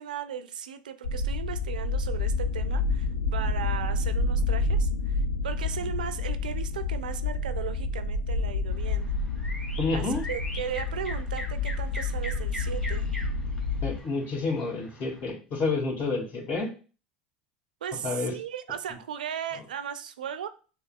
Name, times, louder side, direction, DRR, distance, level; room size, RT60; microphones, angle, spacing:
voice 1, 0.0-9.1 9.9-13.1 17.8-20.5, right 9 dB, 90° right, 0.4 m, -37 dB
sound 1, 1.0-14.0, left 3 dB, 90° left, 0.4 m, -29 dB
sound 2, 8.7-15.3, left 1 dB, 15° left, 1.4 m, -42 dB
voice 2, 9.8-10.2 13.8-16.7 18.0-18.3, left 3 dB, 50° left, 1.8 m, -29 dB
6.6 x 2.3 x 2.2 m
hypercardioid pair, 85°, 4 cm